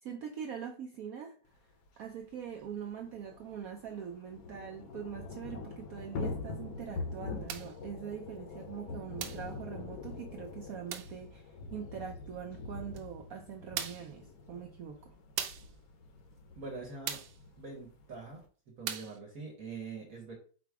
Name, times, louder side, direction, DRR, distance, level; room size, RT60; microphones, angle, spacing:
voice 1, 0.0-1.4 2.0-15.2, right 8 dB, 70° right, 2 dB, 0.9 m, -43 dB
Thunder / Rain, 1.9-2.0 2.2-2.3 2.6-18.5, left 3 dB, 65° left, 1.0 m, -44 dB
sound 1, 7.5-7.8 9.2-9.5 10.9-11.2 13.0-13.1 13.8-14.1 15.4-15.7 17.1-17.4 18.9-19.2, right 9 dB, 90° right, 1.4 m, -38 dB
voice 2, 16.5-17.2 17.6-18.4 18.8-20.3, right 4 dB, 55° right, -1 dB, 1.4 m, -43 dB
5.0 x 2.3 x 4.6 m, 0.40 s
omnidirectional pair, 2.0 m